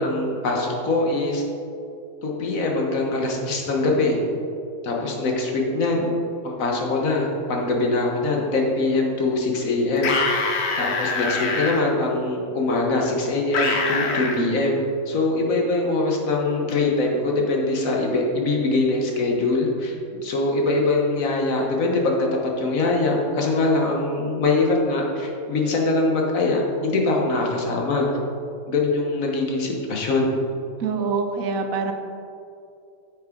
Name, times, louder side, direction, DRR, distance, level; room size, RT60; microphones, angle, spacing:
voice 1, 0.0-1.4 2.2-4.2 4.8-6.1 6.4-10.1 10.8-28.1 28.7-30.3, left 2 dB, 80° left, 0 dB, 1.6 m, -23 dB
sound 1, 10.0-11.8 13.5-14.4, left 4 dB, 55° left, 1.1 m, -24 dB
voice 2, 30.8-31.9, right 5 dB, 80° right, 6 dB, 1.3 m, -25 dB
9.2 x 7.3 x 3.8 m, 2.5 s
omnidirectional pair, 1.4 m